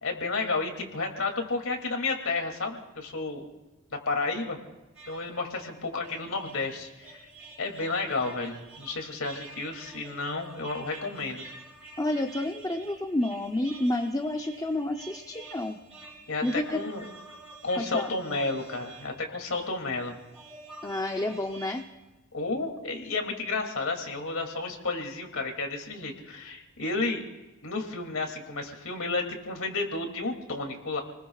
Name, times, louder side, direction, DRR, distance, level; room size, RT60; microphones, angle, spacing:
voice 1, 0.0-3.4 3.9-4.6 5.1-7.3 7.6-11.4 16.3-17.1 17.6-20.2 22.3-27.2 27.6-31.0, left 3 dB, 70° left, 3 dB, 2.6 m, -32 dB
sound 1, 4.9-21.8, right 3 dB, 5° right, 5.1 m, -48 dB
voice 2, 12.0-15.8 16.4-16.9 17.8-18.1 20.8-21.8, left 1 dB, 15° left, 4 dB, 0.7 m, -30 dB
29.5 x 20.5 x 2.4 m, 1.1 s
head